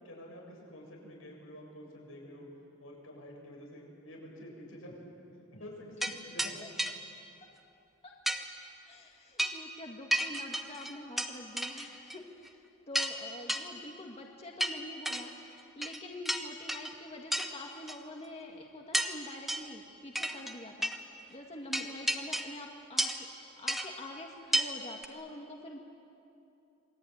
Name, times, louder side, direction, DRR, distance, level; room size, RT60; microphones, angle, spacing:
voice 1, 0.0-2.5 2.8-5.0 5.5-6.6 21.7-21.8, equal, 85° left, -1 dB, 8.0 m, -48 dB
sound 1, 6.0-6.1 6.4-6.5 6.8-6.9 8.3-8.4 9.4-9.6 10.1-11.3 11.6-12.2 12.5-12.6 12.9-13.2 13.5-13.6 14.6-15.2 15.8-16.9 17.3-17.5 17.9-18.0 18.9-19.1 19.5-19.7 20.2-20.5 20.8-21.0 21.7-22.6 23.0-23.3 23.7-23.9 24.5-24.7 25.0-25.1, equal, ahead, 1.3 m, -32 dB
voice 2, 8.8-12.6 12.9-20.9 21.3-23.3 23.6-25.8, left 1 dB, 30° left, 0 dB, 2.0 m, -46 dB
27.5 x 22.5 x 9.5 m, 2.7 s
head